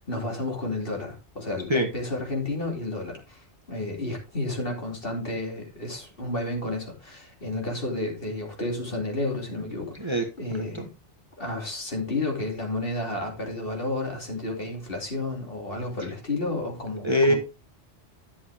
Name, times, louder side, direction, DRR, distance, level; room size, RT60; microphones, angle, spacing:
voice 1, 0.1-10.9 11.4-17.4, left 2 dB, 50° left, 3.1 m, -31 dB
voice 2, 17.0-17.3, equal, 25° right, 1.4 m, -22 dB
11.0 x 7.2 x 3.5 m
omnidirectional pair, 1.2 m